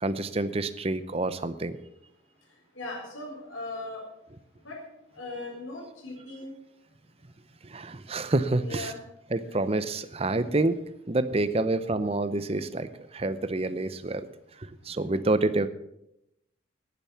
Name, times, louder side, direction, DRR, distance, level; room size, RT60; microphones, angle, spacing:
voice 1, 0.0-1.8 7.6-8.9 9.3-14.3 14.6-15.7, right 2 dB, 30° right, 13 dB, 0.7 m, -28 dB
voice 2, 2.7-4.0 4.6-4.8 5.1-6.5 8.6-9.0, left 2 dB, 85° left, -2 dB, 4.5 m, -38 dB
10.5 x 10.0 x 7.1 m, 0.82 s
head